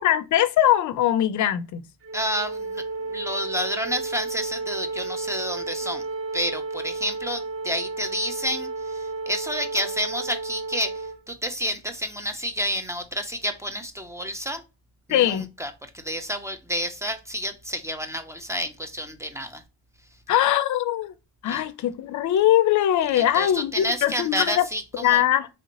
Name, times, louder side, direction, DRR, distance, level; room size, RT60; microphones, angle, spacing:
voice 1, 0.0-1.8 15.1-15.5 20.3-21.1 21.4-24.6 24.9-25.5, left 12 dB, 55° left, 0.4 m, -21 dB
Wind instrument woodwind instrument, 2.0-11.2, right 3 dB, 35° right, 0.9 m, -32 dB
voice 2, 2.1-2.8 3.1-6.1 6.3-14.6 15.1-19.6 21.5-21.6 23.1-25.2, equal, 10° right, 0.4 m, -30 dB
3.3 x 2.8 x 2.8 m
cardioid pair, 160°, 36 cm